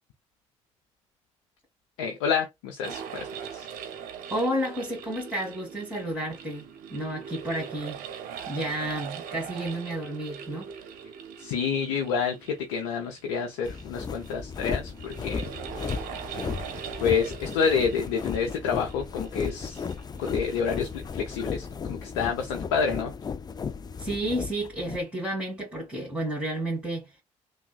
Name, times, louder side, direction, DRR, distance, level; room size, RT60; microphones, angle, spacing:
voice 1, 2.0-3.7 11.4-15.5 17.0-19.8 20.2-23.1, left 6 dB, 80° left, 0.5 m, -28 dB
sound 1, 2.8-21.4, right 7 dB, 65° right, 0.6 m, -42 dB
voice 2, 4.3-8.0 8.5-10.7 24.0-27.1, right 1 dB, 5° right, 1.8 m, -31 dB
sound 2, 13.6-25.0, left 5 dB, 25° left, 0.3 m, -35 dB
3.3 x 2.1 x 2.2 m
hypercardioid pair, 50°, 15 cm